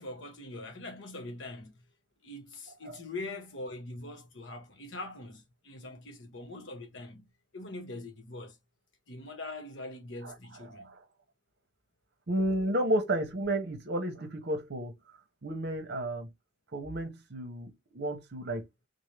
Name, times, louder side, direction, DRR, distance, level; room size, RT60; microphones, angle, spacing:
voice 1, 0.0-1.8 2.2-8.6 9.1-11.0, left 2 dB, 65° left, 1.1 m, -43 dB
voice 2, 12.3-14.9 15.4-16.3 16.7-18.7, right 1 dB, 55° right, 0.9 m, -32 dB
3.9 x 2.7 x 3.1 m
head